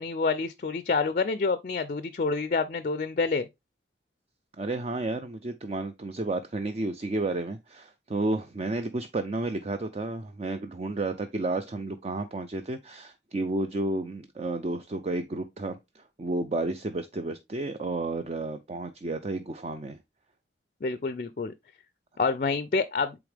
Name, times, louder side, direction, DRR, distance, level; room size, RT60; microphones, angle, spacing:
voice 1, 0.0-3.5 20.8-21.5 22.2-23.2, left 4 dB, 45° left, 0.4 m, -27 dB
voice 2, 4.6-20.0, right 2 dB, 35° right, 0.4 m, -32 dB
8.3 x 3.6 x 3.4 m
head